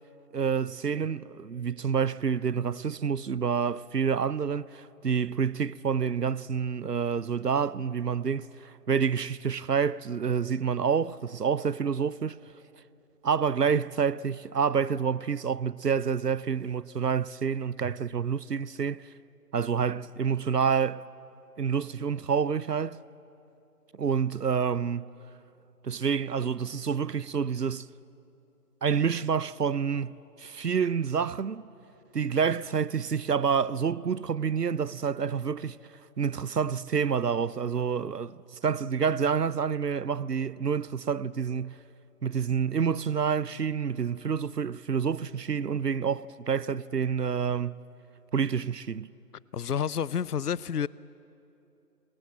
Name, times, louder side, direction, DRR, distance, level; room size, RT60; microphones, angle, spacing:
voice 1, 0.3-12.4 13.2-19.0 19.5-21.0 21.6-23.0 24.0-25.1 25.8-27.9 28.8-31.6 32.1-35.8 36.2-38.4 38.6-41.8 42.2-47.8 48.3-49.1, right 6 dB, 85° right, 0.7 m, -28 dB
voice 2, 49.5-50.9, left 8 dB, 75° left, 0.5 m, -29 dB
27.0 x 22.0 x 7.4 m
figure-of-eight pair, 165°, 48 cm